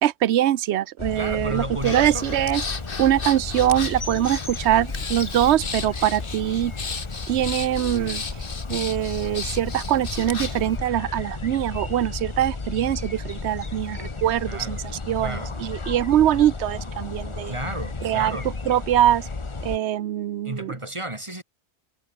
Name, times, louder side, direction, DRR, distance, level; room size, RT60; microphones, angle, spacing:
voice 1, 0.0-2.6 3.0-6.7 7.3-8.4 8.7-17.6 18.0-19.3 19.6-20.7, right 12 dB, 75° right, 1.0 m, -23 dB
sound 1, 1.0-19.8, left 3 dB, 25° left, 1.1 m, -33 dB
voice 2, 1.1-2.2 14.5-14.9 15.2-15.6 17.5-18.5 20.4-21.4, right 1 dB, 25° right, 2.8 m, -32 dB
Breathing, 1.8-10.7, left 4 dB, 50° left, 1.8 m, -34 dB
omnidirectional pair, 1.2 m